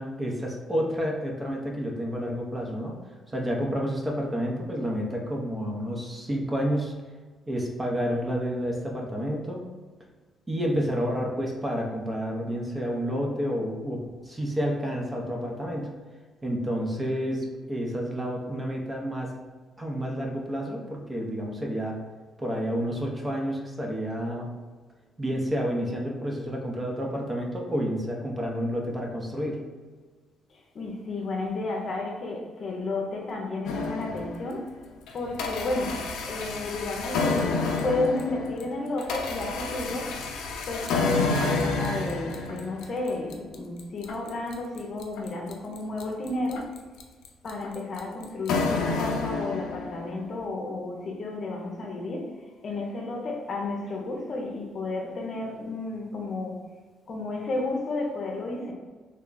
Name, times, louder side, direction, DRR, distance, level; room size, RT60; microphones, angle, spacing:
voice 1, 0.0-2.9 3.3-6.9 7.5-9.6 10.5-15.9 16.4-19.3 19.8-22.0 22.4-24.5 25.2-29.6, equal, 20° right, -1 dB, 0.8 m, -30 dB
voice 2, 30.5-34.7 35.1-36.0 36.3-40.1 40.7-46.7 47.4-52.3 52.6-56.6 57.1-58.7, left 2 dB, 50° left, 0 dB, 0.7 m, -32 dB
sound 1, 33.7-34.6 35.1-50.1, left 3 dB, 85° left, 0.4 m, -29 dB
3.3 x 2.2 x 3.9 m, 1.4 s
cardioid pair, 90°, 0 cm